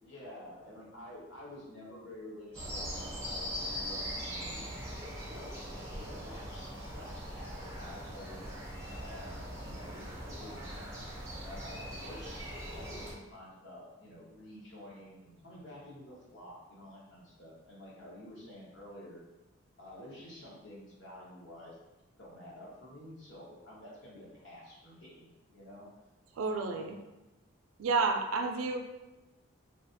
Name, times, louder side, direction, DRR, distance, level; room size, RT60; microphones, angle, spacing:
voice 1, 0.0-4.6 5.3-8.4 9.0-10.7 11.4-12.4 12.7-19.2 19.8-21.8 22.2-25.9, left 1 dB, 60° left, -5 dB, 0.9 m, -50 dB
sound 1, 2.5-13.1, equal, 15° right, 0.5 m, -41 dB
voice 2, 26.4-27.0 27.8-28.8, right 4 dB, 90° right, 5 dB, 0.4 m, -30 dB
3.2 x 2.4 x 2.5 m, 1.0 s
head